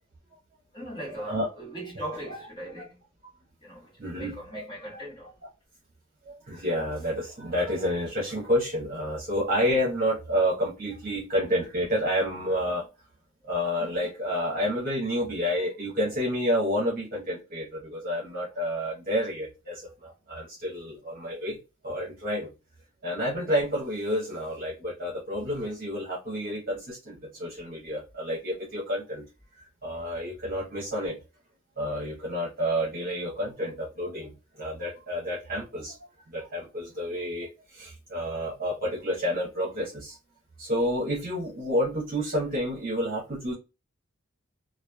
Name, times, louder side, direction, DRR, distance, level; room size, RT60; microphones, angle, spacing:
voice 1, 0.7-3.0 3.6-5.4 13.4-13.5 20.7-20.8, right 1 dB, 20° left, 1.3 m, -40 dB
voice 2, 4.0-4.6 6.2-12.8 13.5-21.6 21.8-22.5 23.0-29.2 29.6-31.2 31.8-36.0 36.3-40.2 40.6-43.5, equal, 40° right, 0.9 m, -29 dB
3.0 x 2.3 x 2.2 m
head